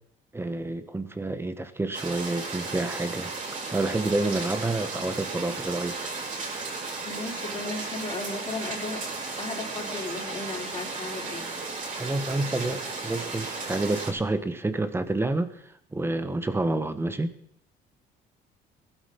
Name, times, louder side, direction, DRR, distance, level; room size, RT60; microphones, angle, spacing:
voice 1, 0.3-3.3 3.7-6.1 12.0-17.3, right 2 dB, 15° right, 11 dB, 1.5 m, -29 dB
sound 1, 1.9-14.1, right 3 dB, 50° right, 7.9 m, -35 dB
voice 2, 7.0-11.5, left 3 dB, 35° left, -1 dB, 4.0 m, -36 dB
19.0 x 12.5 x 5.5 m, 0.73 s
cardioid pair, 110°, 17 cm